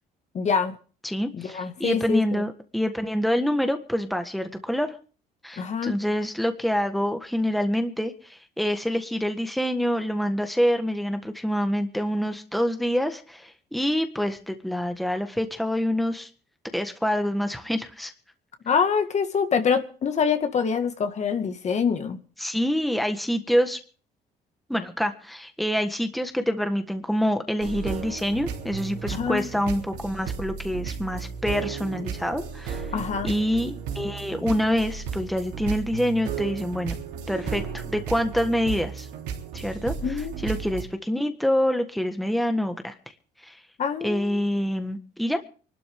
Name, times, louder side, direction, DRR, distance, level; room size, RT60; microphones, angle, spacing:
voice 1, 0.3-0.7 1.3-2.4 5.6-6.0 18.7-22.2 29.1-29.5 32.9-33.4 40.0-40.3 43.8-44.3, left 6 dB, 40° left, 1.9 m, -25 dB
voice 2, 1.0-5.0 5.4-16.3 16.7-18.1 22.4-23.8 24.7-32.9 33.2-36.9 37.3-39.1 39.5-42.9 43.4-43.6 44.0-45.5, equal, ahead, 1.5 m, -26 dB
sound 1, 27.6-40.8, right 7 dB, 85° right, 3.5 m, -34 dB
24.0 x 12.5 x 3.7 m
cardioid pair, 110°, 17 cm